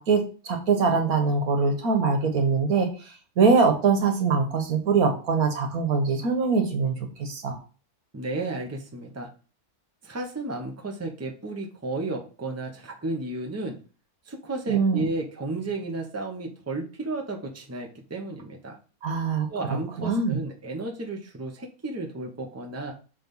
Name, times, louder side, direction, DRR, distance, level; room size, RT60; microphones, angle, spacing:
voice 1, 0.0-7.6 14.7-15.1 19.0-20.4, right 4 dB, 85° right, 5 dB, 1.6 m, -23 dB
voice 2, 8.1-9.3 10.0-13.8 14.3-18.8 19.5-22.9, right 2 dB, 10° right, 1 dB, 0.8 m, -33 dB
6.1 x 3.4 x 5.4 m, 0.37 s
omnidirectional pair, 1.5 m